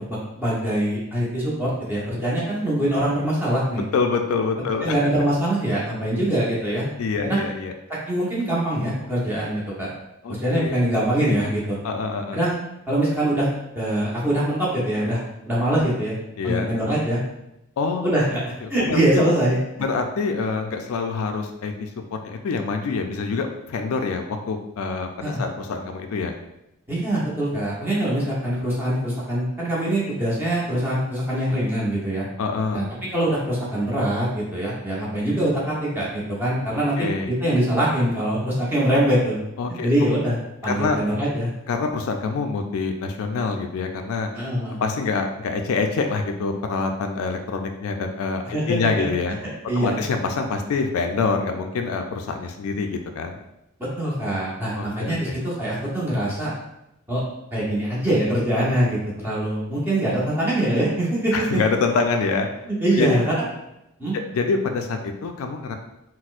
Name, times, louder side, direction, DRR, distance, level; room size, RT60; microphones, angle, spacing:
voice 1, 0.1-3.8 4.8-6.9 7.2-7.4 8.1-9.9 10.3-11.8 12.3-12.6 12.9-15.2 15.5-16.2 16.4-17.2 18.0-18.4 18.7-19.6 25.2-25.4 26.9-32.3 32.7-32.8 33.1-37.1 37.4-39.4 39.8-40.4 40.6-41.5 44.3-44.8 48.5-49.1 49.7-50.0 54.0-56.5 57.1-57.2 57.5-61.6 62.6-63.5 64.0-64.1, right 1 dB, 10° right, -7 dB, 0.8 m, -23 dB
voice 2, 3.9-5.0 7.0-7.7 10.2-10.9 11.8-12.4 16.4-16.7 17.8-18.0 18.6-19.2 19.8-21.9 22.2-26.4 32.4-32.9 37.0-37.3 39.6-40.1 40.7-41.0 41.7-44.3 44.8-49.4 49.8-53.4 54.7-55.4 61.3-62.5 62.9-63.2 64.1-65.7, left 4 dB, 75° left, 5 dB, 0.3 m, -26 dB
4.2 x 2.0 x 2.4 m, 0.88 s
head